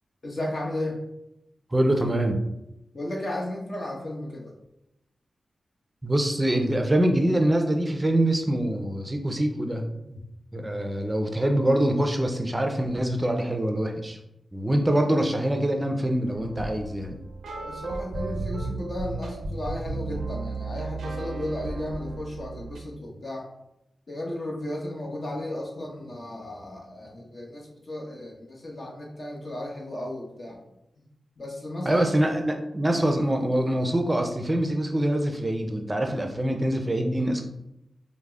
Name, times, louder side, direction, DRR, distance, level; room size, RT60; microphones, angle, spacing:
voice 1, 0.2-1.0 2.9-4.5 14.7-15.0 17.5-23.4 24.1-30.6 31.0-31.1 31.4-32.0, left 1 dB, 55° left, -2 dB, 0.9 m, -34 dB
voice 2, 1.7-2.4 6.0-10.2 10.5-14.2 14.5-17.2 31.9-37.4, right 1 dB, 20° right, 4 dB, 0.4 m, -24 dB
sound 1, 16.3-22.8, right 3 dB, 85° right, 0.4 m, -34 dB
4.7 x 2.0 x 2.3 m, 0.86 s
cardioid pair, 40°, 0 cm